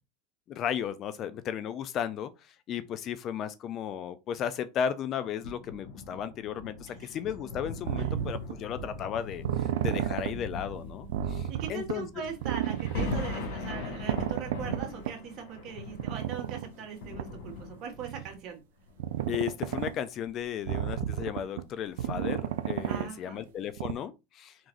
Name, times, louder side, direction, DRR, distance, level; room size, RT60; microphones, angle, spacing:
voice 1, 0.5-2.3 2.7-12.1 19.3-24.6, left 9 dB, 40° left, 0.5 m, -35 dB
sound 1, 5.4-18.2 18.9-19.0, left 2 dB, 75° left, 2.2 m, -40 dB
sound 2, 7.9-8.5 9.4-10.3 10.8-10.9 11.1-11.9 12.4-13.2 14.1-15.1 15.9-16.7 17.2-17.3 18.0-18.3 19.0-19.9 20.6-21.6 22.0-23.1 23.5-23.6 23.8-23.9, right 11 dB, 80° right, 0.5 m, -31 dB
voice 2, 11.5-18.6 22.9-23.4, right 7 dB, 45° right, 1.7 m, -40 dB
4.6 x 3.8 x 2.6 m
supercardioid pair, 125°, 0 cm